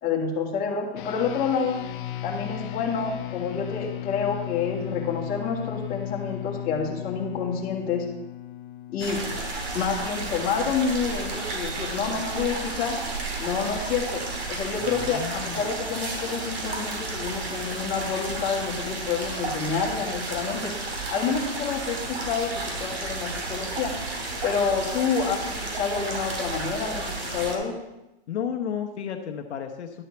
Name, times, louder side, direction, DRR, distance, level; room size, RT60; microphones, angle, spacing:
voice 1, 0.0-1.8 2.2-8.1 8.9-9.2 9.7-13.0 13.4-14.2 14.5-20.8 21.1-23.9 24.4-27.7, left 6 dB, 25° left, -2 dB, 2.1 m, -28 dB
sound 1, 1.0-10.6, left 13 dB, 50° left, 0.8 m, -36 dB
sound 2, 9.0-27.6, right 3 dB, 85° right, 3.1 m, -32 dB
voice 2, 14.8-15.7 28.3-30.0, left 8 dB, 80° left, 4 dB, 1.0 m, -33 dB
11.0 x 4.2 x 7.0 m, 0.95 s
hypercardioid pair, 140°, 33 cm